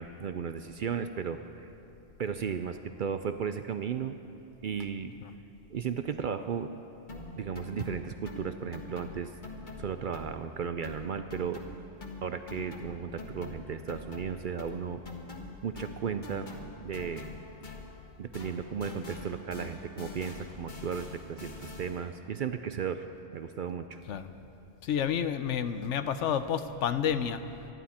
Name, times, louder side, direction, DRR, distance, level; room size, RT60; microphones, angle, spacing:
voice 1, 0.0-1.7 2.2-4.2 4.6-5.1 5.7-6.7 7.4-9.3 9.8-11.6 12.2-15.0 15.6-16.5 16.8-17.3 18.2-23.0 23.3-24.0, right 7 dB, 60° right, 9 dB, 0.6 m, -35 dB
sound 1, 7.1-10.6 10.8-18.1 18.3-22.1, left 2 dB, 45° left, 1.4 m, -45 dB
voice 2, 24.8-27.4, left 8 dB, 80° left, 11 dB, 1.0 m, -30 dB
24.0 x 11.0 x 4.3 m, 2.7 s
omnidirectional pair, 1.2 m